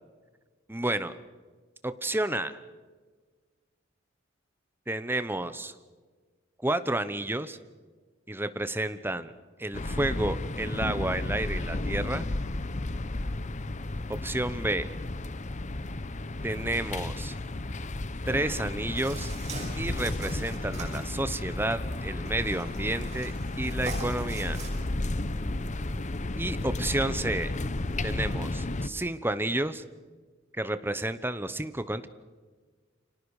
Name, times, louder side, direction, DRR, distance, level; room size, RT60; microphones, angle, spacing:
voice 1, 0.7-1.1 1.8-2.6 4.9-5.7 6.6-7.6 8.3-9.3 9.6-12.4 14.2-15.0 16.4-17.3 18.3-19.3 19.8-24.6 26.4-27.5 28.0-29.8 30.5-32.1, right 1 dB, 10° right, 12 dB, 1.0 m, -31 dB
sound 1, 9.7-28.9, left 2 dB, 40° left, 0.9 m, -33 dB
sound 2, 19.0-24.7, right 3 dB, 35° right, 6.0 m, -44 dB
29.5 x 25.5 x 5.0 m, 1.4 s
head